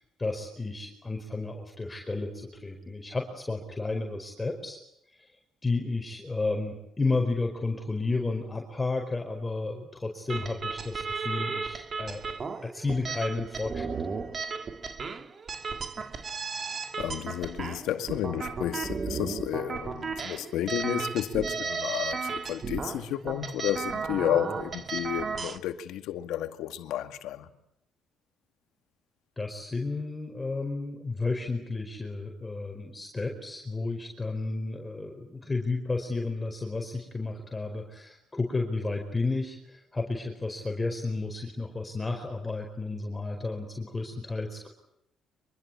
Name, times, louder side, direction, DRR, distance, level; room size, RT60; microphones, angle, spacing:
voice 1, 0.0-4.8 5.1-5.4 5.6-12.2 12.6-13.9 29.4-44.7, left 3 dB, 15° left, 4.9 m, -32 dB
sound 1, 10.3-25.6, right 5 dB, 40° right, 2.6 m, -34 dB
voice 2, 17.0-27.5, left 11 dB, 80° left, 2.1 m, -31 dB
25.0 x 23.5 x 8.7 m
cardioid pair, 85°, 0 cm